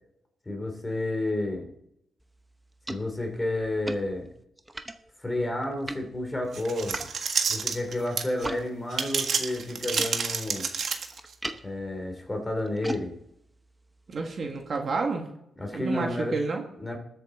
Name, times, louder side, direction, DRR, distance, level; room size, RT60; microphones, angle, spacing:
voice 1, 0.5-1.7 2.9-4.3 5.2-7.0 7.5-10.7 11.6-13.1 15.6-16.4 16.8-17.0, left 1 dB, 15° left, 3 dB, 2.8 m, -30 dB
sound 1, 2.2-8.7 8.9-14.8, right 1 dB, 10° right, 0.8 m, -42 dB
sound 2, 6.5-8.5 8.9-11.3, right 6 dB, 60° right, 1.6 m, -29 dB
voice 2, 14.1-15.3 15.7-16.6, right 3 dB, 45° right, 2 dB, 1.7 m, -30 dB
20.5 x 7.8 x 3.8 m, 0.77 s
cardioid pair, 135°, 0 cm